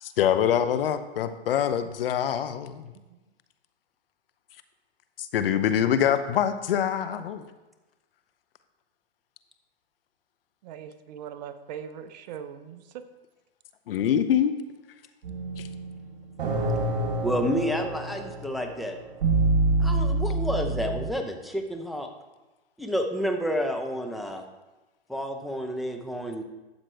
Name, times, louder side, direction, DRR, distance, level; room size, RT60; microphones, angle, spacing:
voice 1, 0.0-2.9 5.2-7.4 13.9-14.5 15.6-15.7, left 9 dB, 60° left, 11 dB, 0.8 m, -25 dB
voice 2, 10.6-12.8, right 8 dB, 40° right, 10 dB, 0.8 m, -40 dB
sound 1, 15.2-21.1, right 2 dB, 60° right, 3.5 m, -27 dB
voice 3, 17.2-19.0 19.8-22.1 22.8-24.4 25.1-26.4, equal, ahead, 3 dB, 0.6 m, -29 dB
12.0 x 7.5 x 3.4 m, 1.1 s
hypercardioid pair, 125°, 32 cm